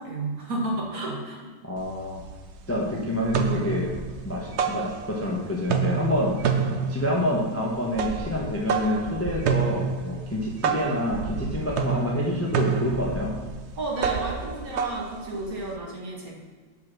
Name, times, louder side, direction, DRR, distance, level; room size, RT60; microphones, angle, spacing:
voice 1, 0.0-1.5 13.8-16.3, right 2 dB, 50° right, -2 dB, 2.0 m, -32 dB
voice 2, 1.6-2.2 2.7-4.0 4.2-6.5 6.9-13.4, left 1 dB, 10° left, -2 dB, 0.9 m, -27 dB
sound 1, 1.8-1.9 2.2-2.8 3.1-5.3 5.6-15.7, right 6 dB, 80° right, 0.6 m, -29 dB
6.4 x 5.7 x 6.0 m, 1.4 s
omnidirectional pair, 2.0 m